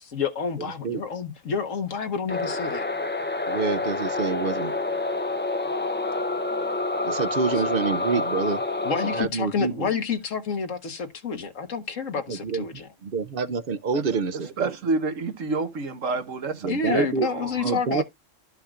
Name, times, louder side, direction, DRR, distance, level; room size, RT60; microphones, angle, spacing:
voice 1, 0.1-2.9 8.8-12.9 16.7-18.0, left 5 dB, 85° left, 1.7 m, -29 dB
sound 1, 2.3-9.2, left 2 dB, 15° left, 0.4 m, -28 dB
voice 2, 3.5-4.7 7.0-8.6 9.2-9.9 12.3-14.7 16.6-17.3 17.6-18.0, right 4 dB, 55° right, 0.7 m, -27 dB
voice 3, 14.3-17.8, right 3 dB, 85° right, 1.6 m, -29 dB
13.0 x 5.6 x 2.4 m
omnidirectional pair, 1.3 m